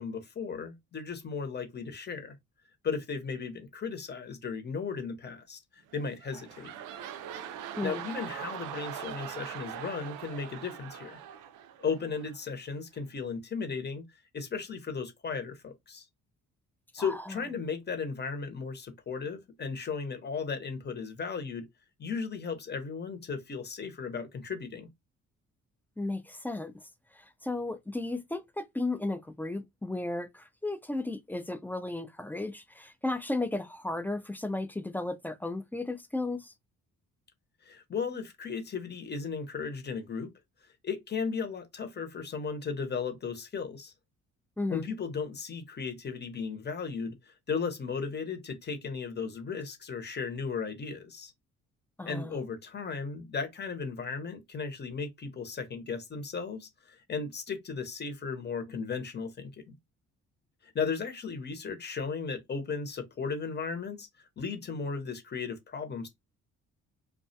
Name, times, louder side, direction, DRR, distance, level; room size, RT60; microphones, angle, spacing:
voice 1, 0.0-2.4 2.8-6.7 7.8-11.2 11.8-14.0 14.3-16.1 16.9-21.7 22.0-24.9 37.6-40.3 40.8-43.9 44.7-51.3 52.1-59.7 60.6-66.1, left 5 dB, 35° left, 0.8 m, -36 dB
sound 1, 5.9-12.4 13.0-13.1, right 9 dB, 85° right, 0.5 m, -42 dB
voice 2, 17.0-17.4 26.0-26.7 27.1-36.5 44.6-44.9 52.0-52.4, left 2 dB, 5° left, 0.3 m, -34 dB
2.3 x 2.1 x 2.7 m
cardioid pair, 90°, 30 cm